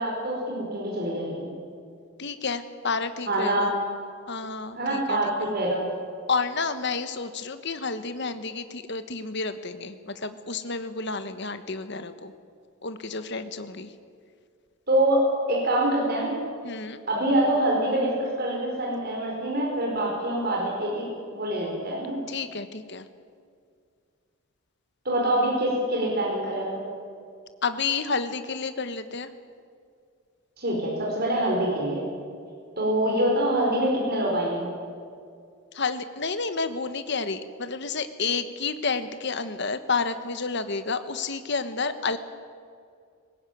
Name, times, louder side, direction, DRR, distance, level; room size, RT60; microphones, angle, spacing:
voice 1, 0.0-1.5 3.3-3.7 4.8-5.3 5.5-5.8 14.9-15.2 15.5-16.4 17.1-22.2 25.0-26.8 30.6-32.0 32.8-34.6, right 1 dB, 45° right, -2 dB, 4.9 m, -25 dB
voice 2, 2.2-3.7 4.3-5.5 6.3-12.3 12.8-13.9 16.6-17.0 22.3-23.1 27.6-29.3 35.7-42.2, left 4 dB, 55° left, 10 dB, 1.3 m, -30 dB
20.5 x 18.0 x 9.4 m, 2.2 s
head